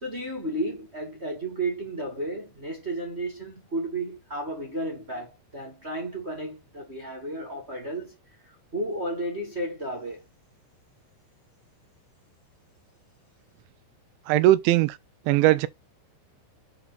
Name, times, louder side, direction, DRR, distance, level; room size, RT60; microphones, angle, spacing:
voice 1, 0.0-8.2 8.7-10.2, right 1 dB, 25° right, 1.5 m, -33 dB
voice 2, 14.3-15.0 15.3-15.7, right 15 dB, 90° right, 3.0 m, -19 dB
8.5 x 4.0 x 4.1 m
omnidirectional pair, 5.3 m